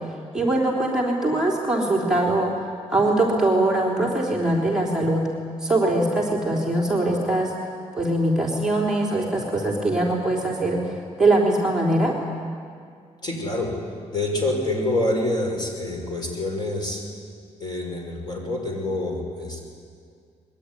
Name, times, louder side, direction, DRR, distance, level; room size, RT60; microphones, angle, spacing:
voice 1, 0.3-5.2 5.6-7.5 7.9-12.1, right 2 dB, 5° right, -4 dB, 3.6 m, -22 dB
voice 2, 13.2-13.8 14.1-17.0 17.6-19.6, left 1 dB, 35° left, 1 dB, 5.8 m, -26 dB
25.0 x 22.0 x 9.9 m, 2.2 s
wide cardioid pair, 165°, 12 cm